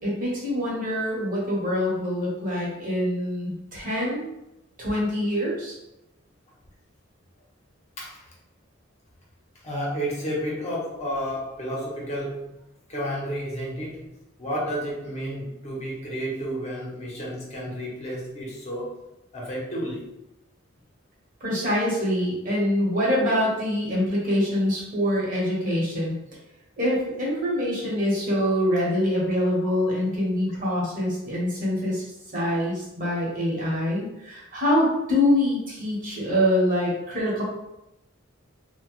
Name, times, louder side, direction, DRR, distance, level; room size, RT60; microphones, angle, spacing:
voice 1, 0.0-4.2 4.8-5.7 21.4-26.1 26.8-32.1 32.3-37.4, left 1 dB, 45° right, -5 dB, 1.1 m, -25 dB
voice 2, 9.6-12.6 12.9-14.1 14.4-19.0 19.3-20.1, equal, 35° left, -4 dB, 0.8 m, -31 dB
2.9 x 2.2 x 3.0 m, 0.89 s
head